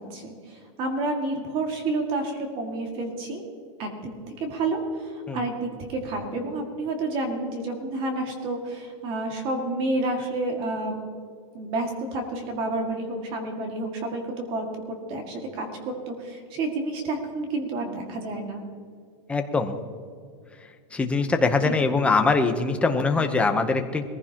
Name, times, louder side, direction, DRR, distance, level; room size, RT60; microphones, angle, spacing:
voice 1, 0.0-3.4 3.8-4.1 4.4-11.0 11.5-18.6 21.6-21.8, right 2 dB, 35° right, 3 dB, 2.1 m, -30 dB
voice 2, 19.3-19.8 20.9-24.0, left 3 dB, 5° left, 5 dB, 0.8 m, -22 dB
21.5 x 15.5 x 2.9 m, 2.1 s
supercardioid pair, 160°, 16 cm